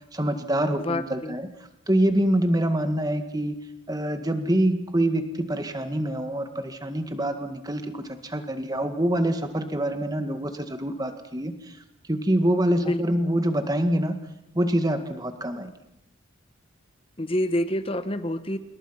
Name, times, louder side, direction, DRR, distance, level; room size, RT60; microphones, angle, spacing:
voice 1, 0.1-1.5 1.9-3.6 3.9-11.5 12.1-14.2 14.5-15.7, right 1 dB, 20° right, 7 dB, 1.8 m, -25 dB
voice 2, 0.8-1.4 12.8-13.0 17.2-18.6, left 1 dB, 25° left, 11 dB, 1.3 m, -27 dB
27.0 x 21.5 x 5.8 m, 0.84 s
head